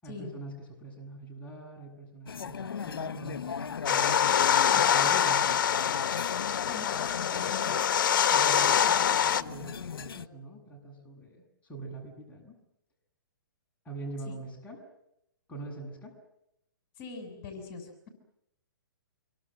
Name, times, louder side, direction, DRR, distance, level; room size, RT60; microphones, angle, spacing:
voice 1, 0.0-4.2 4.7-5.8 8.3-12.6 13.8-14.8 15.5-16.1, right 2 dB, 10° left, -1 dB, 7.8 m, -43 dB
sound 1, 2.3-10.3, left 7 dB, 85° left, 1.1 m, -39 dB
sound 2, 3.9-9.4, left 9 dB, 60° left, 1.3 m, -25 dB
voice 2, 6.6-7.8 14.3-14.4 17.0-18.1, left 4 dB, 40° left, 6 dB, 6.8 m, -42 dB
27.0 x 24.5 x 7.7 m, 0.81 s
hypercardioid pair, 145°, 12 cm